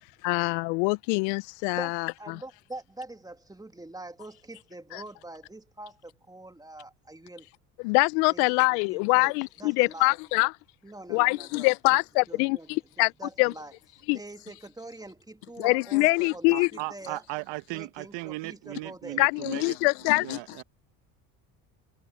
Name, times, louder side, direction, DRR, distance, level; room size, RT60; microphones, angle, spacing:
voice 1, 0.2-2.4 4.9-5.0 7.8-10.5 11.1-13.1 13.4-13.5 14.1-14.2 15.6-16.7 19.2-20.6, left 29 dB, 70° left, 0.8 m, -24 dB
voice 2, 2.2-7.5 8.3-9.3 9.6-10.2 10.8-12.0 12.3-12.7 13.2-13.7 14.1-17.2 17.7-19.2, right 2 dB, 10° right, 2.5 m, -44 dB
voice 3, 16.5-19.8 20.2-20.6, right 20 dB, 65° right, 1.2 m, -37 dB
hypercardioid pair, 75°, 47 cm